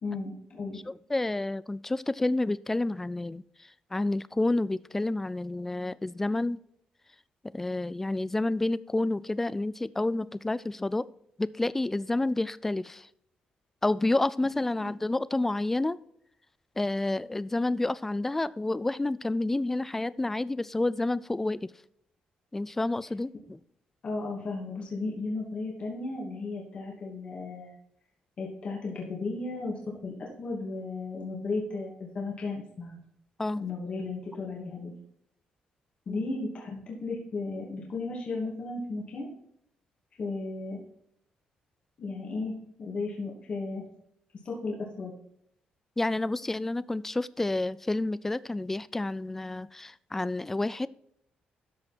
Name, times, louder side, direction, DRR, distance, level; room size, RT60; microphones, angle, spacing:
voice 1, 0.0-0.8 24.0-27.8 28.4-33.0 33.6-34.9 36.1-39.3 40.2-40.8 42.0-43.8 44.4-45.1, left 3 dB, 40° left, -2 dB, 2.5 m, -35 dB
voice 2, 0.7-6.6 7.5-11.1 11.4-13.1 13.8-16.0 16.8-21.7 22.5-23.6 33.4-33.6 36.1-36.2 46.0-50.9, left 2 dB, 10° left, 18 dB, 0.3 m, -29 dB
13.0 x 5.3 x 4.3 m, 0.72 s
cardioid pair, 145°, 3 cm